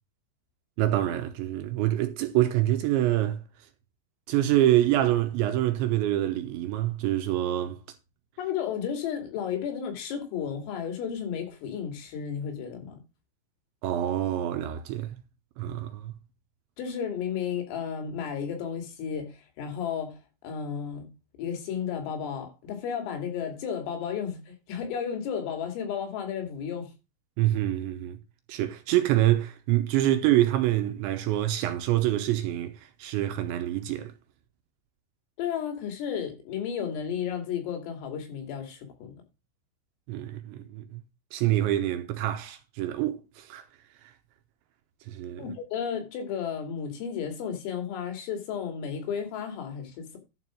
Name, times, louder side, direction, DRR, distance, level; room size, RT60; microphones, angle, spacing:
voice 1, 0.8-3.4 4.3-7.8 13.8-15.2 15.6-16.2 27.4-28.2 28.5-34.1 40.1-41.0 41.3-43.6 44.0-44.1 45.1-45.5, right 14 dB, 75° right, 2.9 m, -26 dB
voice 2, 8.4-13.0 16.8-21.1 21.4-26.9 35.4-39.2 45.4-50.2, left 7 dB, 80° left, 5.2 m, -33 dB
11.0 x 4.9 x 6.0 m
omnidirectional pair, 5.9 m